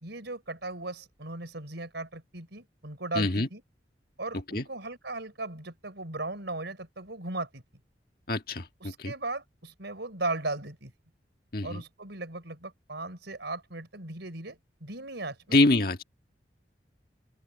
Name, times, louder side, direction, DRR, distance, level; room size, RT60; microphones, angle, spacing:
voice 1, 0.0-3.6 4.2-7.6 8.8-10.9 11.6-15.6, right 2 dB, 90° right, 4.1 m, -37 dB
voice 2, 3.2-3.5 4.5-4.6 8.3-9.1 11.5-11.8 15.5-16.0, left 2 dB, 55° left, 1.7 m, -25 dB
open air
head